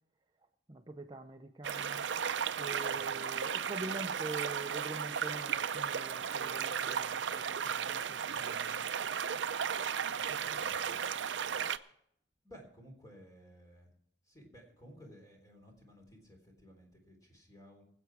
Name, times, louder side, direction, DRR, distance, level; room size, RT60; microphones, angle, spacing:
voice 1, 0.7-2.0 2.6-8.8, right 2 dB, 25° right, 5 dB, 0.6 m, -45 dB
sound 1, 1.6-11.8, right 7 dB, 80° right, 0.5 m, -35 dB
voice 2, 10.4-10.8 12.4-13.9 14.3-17.8, equal, 20° left, 1 dB, 3.5 m, -56 dB
23.0 x 8.2 x 4.7 m, 0.71 s
head